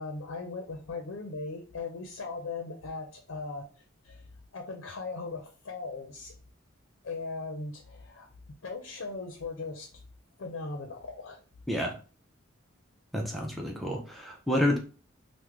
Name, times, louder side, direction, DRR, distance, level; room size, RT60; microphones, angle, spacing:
voice 1, 0.0-4.2 4.5-6.3 7.0-8.3 8.6-9.9 10.4-11.4, left 3 dB, 65° left, 2 dB, 0.5 m, -38 dB
voice 2, 13.1-14.8, left 1 dB, ahead, 0 dB, 0.4 m, -29 dB
3.5 x 2.1 x 2.9 m, 0.36 s
head